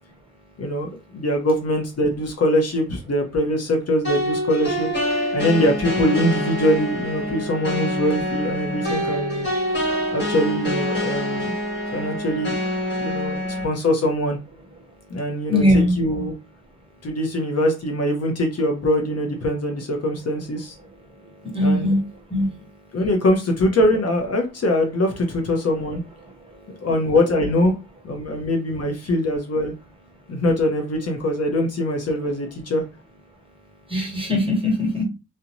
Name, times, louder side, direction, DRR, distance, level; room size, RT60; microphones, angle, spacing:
voice 1, 0.6-4.9 5.3-9.5 10.1-11.6 11.9-12.5 13.0-14.4 15.1-16.3 17.0-20.7 21.6-21.9 22.9-26.0 26.8-27.8 28.0-29.7 30.3-32.8, left 1 dB, 50° left, 3 dB, 0.6 m, -22 dB
sound 1, 4.0-13.6, equal, 35° left, 1.2 m, -26 dB
voice 2, 15.5-15.9 21.4-22.0 22.3-22.5 33.9-35.0, left 1 dB, 15° right, 0 dB, 1.0 m, -20 dB
2.6 x 2.1 x 2.9 m, 0.28 s
wide cardioid pair, 105°, 33 cm